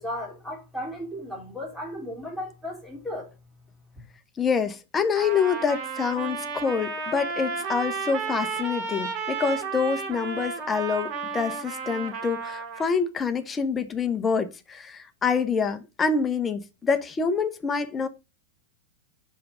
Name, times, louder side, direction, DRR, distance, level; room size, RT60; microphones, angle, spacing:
voice 1, 0.0-3.3, left 1 dB, 5° right, 3.4 m, -35 dB
voice 2, 4.4-18.1, left 5 dB, 20° left, 0.9 m, -26 dB
Trumpet, 5.1-12.9, right 5 dB, 35° right, 2.1 m, -33 dB
5.5 x 5.5 x 5.4 m
figure-of-eight pair, 90°, 0 cm